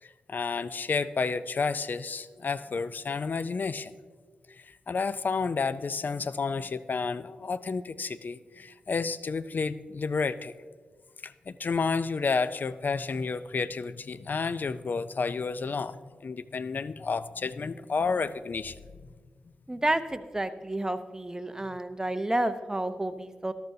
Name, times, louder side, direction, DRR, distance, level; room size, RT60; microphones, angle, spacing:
voice 1, 0.0-4.0 4.5-10.5 11.2-18.8, left 4 dB, 55° left, 15 dB, 0.5 m, -31 dB
voice 2, 19.7-23.5, right 1 dB, 15° right, 10 dB, 0.8 m, -30 dB
13.5 x 12.0 x 2.7 m, 1.5 s
cardioid pair, 45°, 4 cm